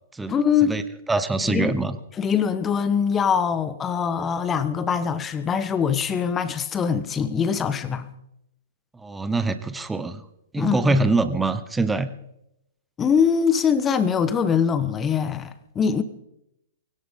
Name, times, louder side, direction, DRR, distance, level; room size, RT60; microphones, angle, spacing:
voice 1, 0.3-0.8 1.4-1.8 2.2-8.1 10.6-11.0 13.0-16.0, left 7 dB, 20° left, 1.2 m, -23 dB
voice 2, 1.1-2.0 8.9-10.2 10.5-12.1, right 3 dB, 10° right, 1.0 m, -24 dB
21.5 x 17.0 x 3.8 m
figure-of-eight pair, 110°, 0 cm